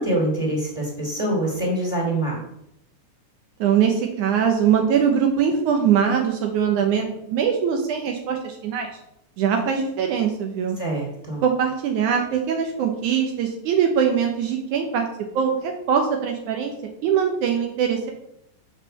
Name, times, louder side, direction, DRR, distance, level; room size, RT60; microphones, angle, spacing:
voice 1, 0.0-2.4 10.8-11.4, right 1 dB, 10° left, -3 dB, 1.4 m, -25 dB
voice 2, 3.6-8.9 9.4-10.8 11.4-15.1 15.3-16.7 17.0-18.1, right 7 dB, 90° right, 3 dB, 1.7 m, -22 dB
8.0 x 5.6 x 6.7 m, 0.78 s
omnidirectional pair, 4.8 m